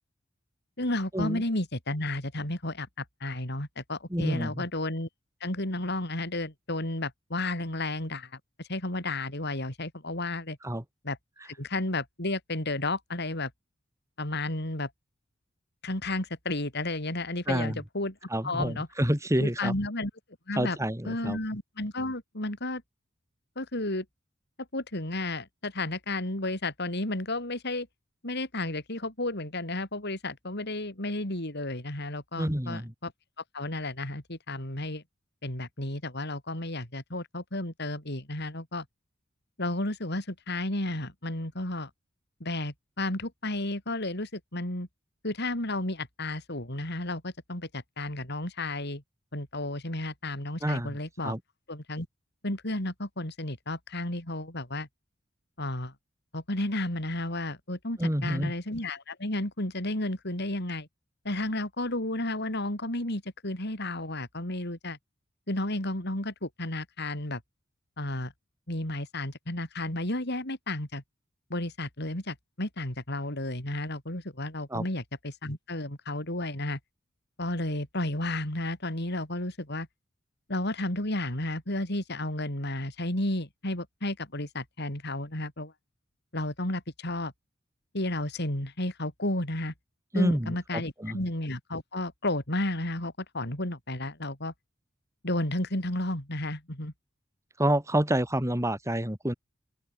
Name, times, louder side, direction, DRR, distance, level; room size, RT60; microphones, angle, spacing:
voice 1, 0.8-5.1 5.4-10.6 11.0-11.2 11.6-13.5 14.2-14.9 15.8-18.1 18.4-18.9 19.4-20.1 20.5-20.8 21.0-22.8 23.6-24.0 24.7-27.9 28.2-33.1 33.5-35.0 35.4-38.8 39.6-41.9 42.4-44.9 45.2-49.0 49.3-51.4 51.7-52.1 52.4-54.9 55.6-55.9 56.3-60.9 61.2-65.0 65.5-67.4 68.0-68.3 68.7-71.0 71.5-76.8 77.4-79.9 80.5-85.7 86.3-87.3 87.9-89.7 90.1-94.5 95.2-96.9, left 1 dB, 60° left, 5.8 m, -32 dB
voice 2, 4.1-4.7 10.6-10.8 17.5-17.8 18.3-19.8 20.5-21.4 32.4-32.9 50.6-51.0 51.2-51.4 58.0-58.5 74.7-74.9 90.1-91.2 97.6-99.3, right 1 dB, 15° right, 5.3 m, -28 dB
open air
head